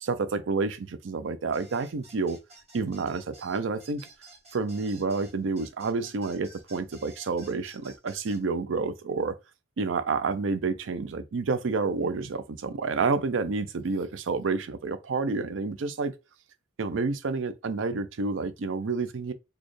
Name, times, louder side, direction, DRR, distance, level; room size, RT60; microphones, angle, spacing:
voice 1, 0.0-2.4 2.7-4.0 4.5-9.4 9.8-16.1 16.8-19.3, right 4 dB, 85° right, 0.5 m, -29 dB
sound 1, 1.5-8.4, right 2 dB, 35° right, 1.5 m, -52 dB
4.2 x 2.3 x 3.2 m
head